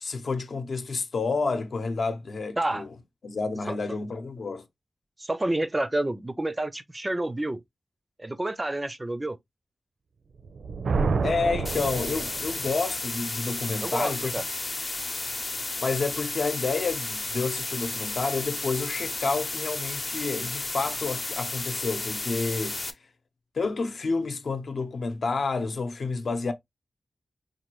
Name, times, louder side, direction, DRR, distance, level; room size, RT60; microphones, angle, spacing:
voice 1, 0.0-2.9 3.2-4.6 11.2-14.3 15.8-22.8 23.5-26.5, left 4 dB, 60° left, 0.8 m, -29 dB
voice 2, 5.2-7.6 8.2-9.4 13.8-14.4, right 1 dB, 15° right, 0.4 m, -29 dB
Thunder, 10.4-12.8, right 4 dB, 75° right, 0.5 m, -29 dB
sound 1, 11.6-22.9, left 2 dB, 30° left, 0.8 m, -33 dB
5.2 x 2.5 x 3.0 m
wide cardioid pair, 150°, 0 cm